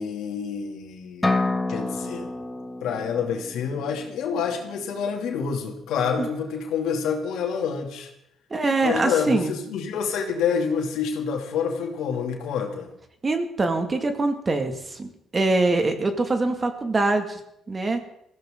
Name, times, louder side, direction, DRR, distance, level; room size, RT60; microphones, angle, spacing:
voice 1, 0.0-1.4 1.7-2.3 2.8-8.1 8.8-12.9, left 6 dB, 85° left, 2 dB, 2.8 m, -27 dB
sound 1, 1.2-5.0, left 2 dB, 15° left, 1.8 m, -29 dB
voice 2, 8.5-9.5 13.2-17.4 17.7-18.0, right 2 dB, 30° right, 6 dB, 2.2 m, -24 dB
21.0 x 15.0 x 3.9 m, 0.77 s
cardioid pair, 90°, 0 cm